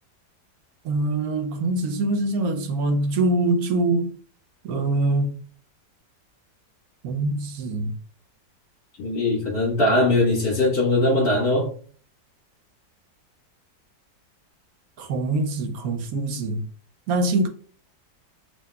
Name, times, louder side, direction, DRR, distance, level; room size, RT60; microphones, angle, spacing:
voice 1, 0.8-4.1 4.6-5.3 7.0-7.9 15.0-16.6 17.1-17.5, right 2 dB, 70° right, 1.0 m, -24 dB
voice 2, 9.0-11.7, left 2 dB, 60° left, 2.0 m, -21 dB
4.1 x 2.5 x 2.2 m
omnidirectional pair, 1.9 m